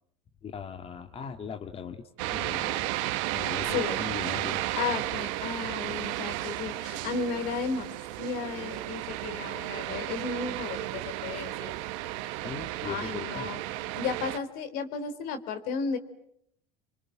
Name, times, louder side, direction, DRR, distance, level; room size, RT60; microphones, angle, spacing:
voice 1, 0.4-2.0 2.3-2.9 3.3-4.6 12.4-13.5, left 6 dB, 35° left, 6 dB, 2.1 m, -39 dB
sound 1, 2.2-14.4, right 16 dB, 75° right, 1.5 m, -33 dB
voice 2, 4.7-7.9 8.2-11.7 12.8-13.6 13.9-16.0, left 5 dB, 65° left, 9 dB, 3.8 m, -34 dB
29.5 x 25.5 x 7.8 m, 0.74 s
hypercardioid pair, 90°, 16 cm